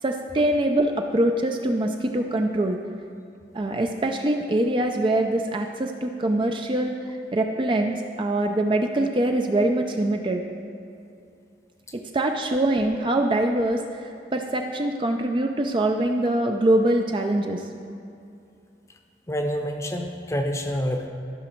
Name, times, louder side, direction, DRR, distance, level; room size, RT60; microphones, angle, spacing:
voice 1, 0.0-2.8 3.5-10.4 11.9-17.6, right 1 dB, 25° right, 4 dB, 0.4 m, -24 dB
voice 2, 19.3-21.1, equal, 15° left, 4 dB, 0.7 m, -27 dB
14.5 x 6.1 x 4.4 m, 2.6 s
head